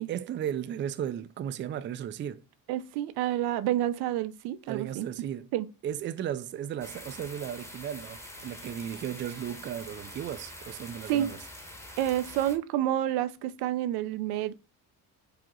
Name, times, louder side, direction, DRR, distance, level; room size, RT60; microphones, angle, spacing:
voice 1, 0.0-2.4 4.7-5.5 5.8-11.4, right 10 dB, 30° right, 0.4 m, -35 dB
voice 2, 2.7-5.3 5.5-5.7 11.1-11.3 12.0-14.5, right 12 dB, 90° right, 0.6 m, -29 dB
sound 1, 6.8-12.6, left 1 dB, 5° left, 1.0 m, -45 dB
4.9 x 2.9 x 3.7 m
cardioid pair, 125°, 38 cm